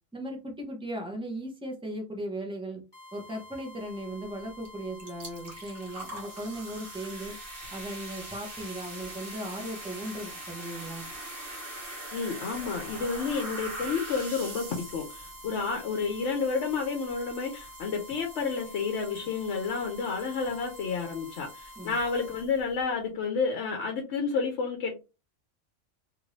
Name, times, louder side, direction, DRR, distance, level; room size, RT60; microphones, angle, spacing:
voice 1, 0.1-2.8 3.1-7.4 7.7-11.1 21.8-22.0, right 1 dB, 5° right, 2 dB, 0.7 m, -37 dB
sound 1, 2.9-22.5, left 1 dB, 20° left, 1.3 m, -49 dB
sound 2, 4.6-4.7 5.0-22.7, right 2 dB, 50° right, 1.3 m, -43 dB
voice 2, 12.1-24.9, left 5 dB, 65° left, 2 dB, 0.9 m, -30 dB
2.9 x 2.6 x 3.1 m, 0.29 s
omnidirectional pair, 1.3 m